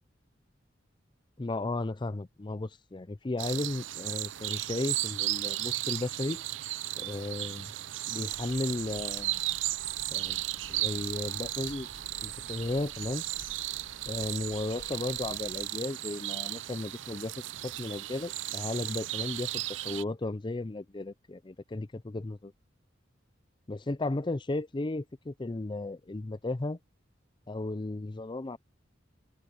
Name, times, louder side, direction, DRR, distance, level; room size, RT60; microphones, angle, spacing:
voice 1, 1.4-6.4 6.9-7.7 8.1-9.4 10.1-11.9 12.2-13.2 14.1-17.3 17.6-22.5 23.7-26.8 27.5-28.6, left 2 dB, 25° left, 0.5 m, -35 dB
sound 1, 3.4-20.0, right 15 dB, 80° right, 0.5 m, -35 dB
sound 2, 8.3-15.7, left 2 dB, 65° left, 1.6 m, -53 dB
head